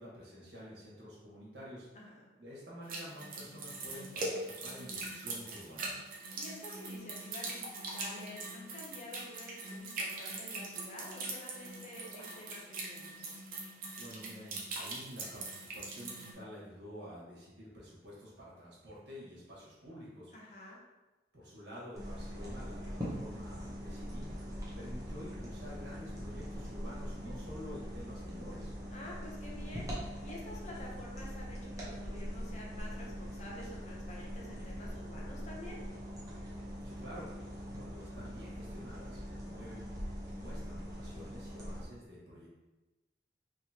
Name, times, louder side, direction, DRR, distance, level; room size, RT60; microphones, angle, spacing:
voice 1, 0.0-1.9 2.4-6.1 14.0-20.3 21.3-24.3 24.7-28.7 36.8-37.3 37.7-39.9 40.2-42.5, equal, 70° right, -6 dB, 1.5 m, -49 dB
voice 2, 1.9-2.3 6.3-13.3 20.3-20.8 28.9-29.9 30.2-35.8, left 1 dB, 40° left, -3 dB, 0.7 m, -49 dB
sound 1, 2.9-16.3, right 2 dB, 50° right, 0.7 m, -42 dB
sound 2, 21.9-41.8, equal, 20° right, 0.8 m, -42 dB
3.8 x 3.1 x 2.8 m, 1.1 s
head